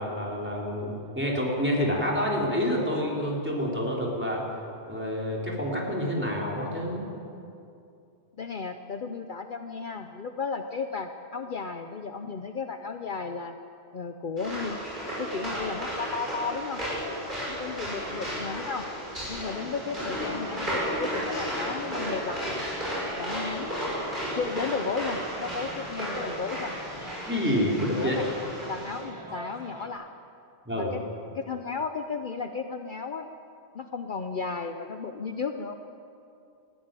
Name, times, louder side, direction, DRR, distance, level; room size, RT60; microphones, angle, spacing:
voice 1, 0.0-4.4 4.9-7.1 27.3-28.2 30.7-30.9, equal, 10° right, -3 dB, 3.8 m, -28 dB
voice 2, 8.3-13.6 13.9-14.8 15.2-16.8 17.5-18.9 19.3-22.4 23.2-23.9 24.4-26.7 27.9-28.3 28.7-30.1 30.7-33.3 33.7-35.8, left 5 dB, 50° left, 6 dB, 0.9 m, -34 dB
sound 1, 14.4-29.0, equal, 45° right, 7.1 m, -34 dB
sound 2, 19.5-29.9, right 1 dB, 25° right, 1.8 m, -44 dB
19.5 x 15.0 x 9.0 m, 2.6 s
omnidirectional pair, 1.1 m